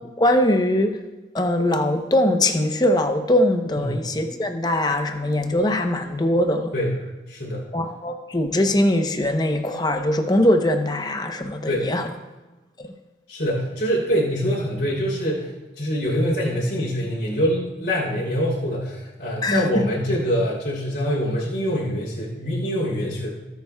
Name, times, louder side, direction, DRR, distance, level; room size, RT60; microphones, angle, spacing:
voice 1, 0.2-1.0 1.3-6.7 7.7-12.1 12.8-12.9 19.4-19.7, left 1 dB, 25° left, 6 dB, 0.7 m, -21 dB
voice 2, 7.3-7.6 11.7-11.9 13.3-15.5 15.8-23.3, equal, 70° left, -5 dB, 2.9 m, -24 dB
18.0 x 8.1 x 2.2 m, 1.2 s
head